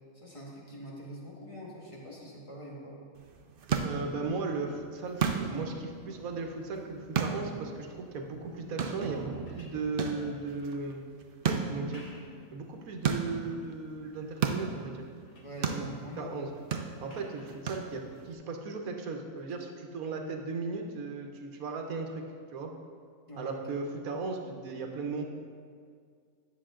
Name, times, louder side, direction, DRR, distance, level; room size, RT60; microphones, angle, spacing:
voice 1, 0.1-3.0 15.4-16.3 23.3-23.8, equal, 25° left, -4 dB, 1.6 m, -44 dB
sound 1, 3.2-18.3, right 6 dB, 55° right, 0.7 m, -36 dB
voice 2, 3.8-11.0 11.7-12.1 12.5-15.1 15.7-15.8 16.2-16.5 17.0-22.2 22.5-22.7 23.4-25.2, right 4 dB, 80° right, 3 dB, 1.4 m, -36 dB
sound 2, 9.1-10.8 11.7-12.5 13.0-13.6 14.1-14.6 14.9-15.6 17.1-17.6 19.4-19.5, left 1 dB, 80° left, 1.7 m, -57 dB
10.5 x 7.2 x 3.8 m, 2.2 s
omnidirectional pair, 1.5 m